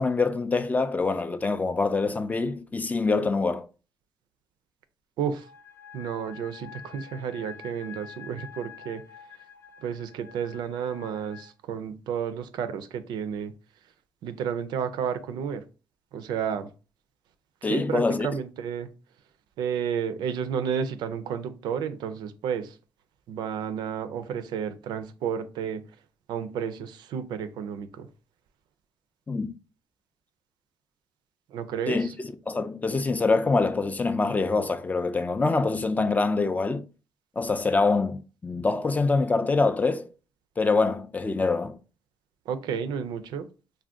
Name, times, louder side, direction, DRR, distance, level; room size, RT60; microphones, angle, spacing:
voice 1, 0.0-3.7 17.6-18.3 29.3-29.5 31.9-36.9 37.4-40.1 40.6-41.8, left 3 dB, 20° left, 0.3 m, -25 dB
sound 1, 5.3-11.5, left 8 dB, 35° left, 0.7 m, -47 dB
voice 2, 5.9-9.0 9.8-13.5 14.2-15.6 16.1-16.7 17.7-18.9 19.6-22.7 23.3-25.8 26.3-28.1 31.5-32.1 42.5-43.5, right 7 dB, 80° right, 0.4 m, -31 dB
2.5 x 2.1 x 3.4 m
cardioid pair, 75°, 7 cm